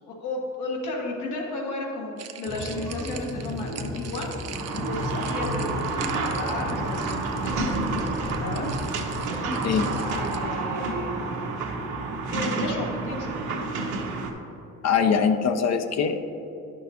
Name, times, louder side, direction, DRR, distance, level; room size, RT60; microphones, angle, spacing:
voice 1, 0.1-4.3 4.7-8.7 9.4-11.2 12.3-13.5, left 2 dB, 85° left, -2 dB, 1.6 m, -34 dB
sound 1, 2.2-10.4, right 8 dB, 55° right, 0.6 m, -43 dB
sound 2, 2.5-10.3, left 2 dB, 10° left, 0.9 m, -35 dB
sound 3, 4.5-14.3, right 3 dB, 75° right, 1.2 m, -29 dB
voice 2, 14.8-16.2, left 6 dB, 60° left, 7 dB, 0.6 m, -22 dB
10.5 x 6.4 x 2.8 m, 3.0 s
cardioid pair, 90°, 30 cm